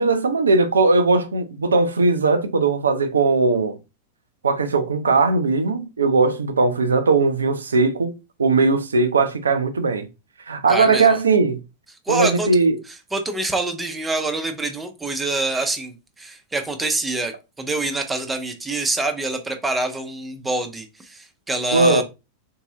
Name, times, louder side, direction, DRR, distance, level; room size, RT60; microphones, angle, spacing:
voice 1, 0.0-3.8 4.4-8.1 8.4-10.1 10.5-11.6 12.1-12.8 21.7-22.0, right 3 dB, 70° right, 0.5 m, -19 dB
voice 2, 10.7-11.2 12.1-12.5 13.1-22.0, right 2 dB, 10° right, 0.6 m, -26 dB
3.8 x 2.7 x 2.8 m
figure-of-eight pair, 90°, 0 cm